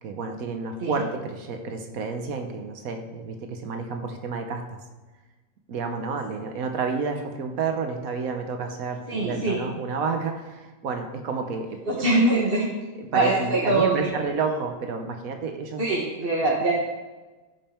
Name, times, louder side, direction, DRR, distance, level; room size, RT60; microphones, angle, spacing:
voice 1, 0.0-4.8 5.7-12.0 12.3-12.4 13.0-15.8, right 4 dB, 80° right, 5 dB, 1.4 m, -30 dB
voice 2, 9.1-9.6 11.9-12.7 13.1-14.2 15.8-16.7, right 2 dB, 40° right, -4 dB, 1.5 m, -23 dB
16.5 x 5.5 x 4.4 m, 1.2 s
omnidirectional pair, 1.5 m